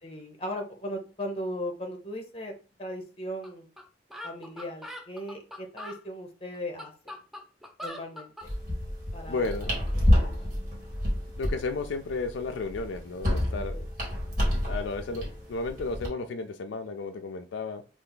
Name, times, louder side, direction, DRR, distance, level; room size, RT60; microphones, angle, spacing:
voice 1, 0.0-2.5 2.8-3.7 4.2-7.2 7.8-8.5 9.1-9.5 9.9-10.5 13.7-13.8, equal, 30° left, 4 dB, 0.7 m, -38 dB
sound 1, 3.4-3.5 3.8-3.9 4.1-6.0 6.5-8.5, left 1 dB, ahead, 0.5 m, -41 dB
sound 2, 8.4-16.1, left 1 dB, 50° right, 1.8 m, -29 dB
voice 2, 9.3-9.7 11.4-13.8 14.5-17.8, left 3 dB, 90° left, 8 dB, 0.4 m, -33 dB
3.3 x 2.5 x 3.8 m, 0.34 s
head